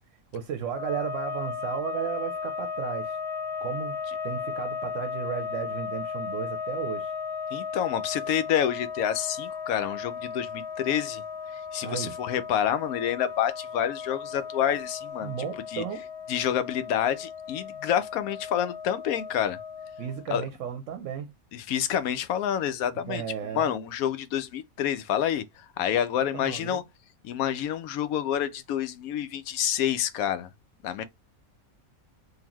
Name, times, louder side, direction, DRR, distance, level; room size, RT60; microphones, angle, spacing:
voice 1, 0.3-3.2 3.6-7.1 11.8-12.1 15.2-16.1 20.0-21.3 23.1-23.7 26.3-26.8, right 8 dB, 70° right, 0.9 m, -34 dB
sound 1, 0.6-20.3, left 6 dB, 55° left, 1.1 m, -36 dB
voice 2, 7.5-11.2 11.7-15.3 15.7-15.8 16.3-19.6 20.3-20.4 21.5-23.2 23.5-26.8 27.2-30.5 30.8-31.0, left 10 dB, 80° left, 1.0 m, -28 dB
3.8 x 2.7 x 2.9 m
omnidirectional pair, 1.5 m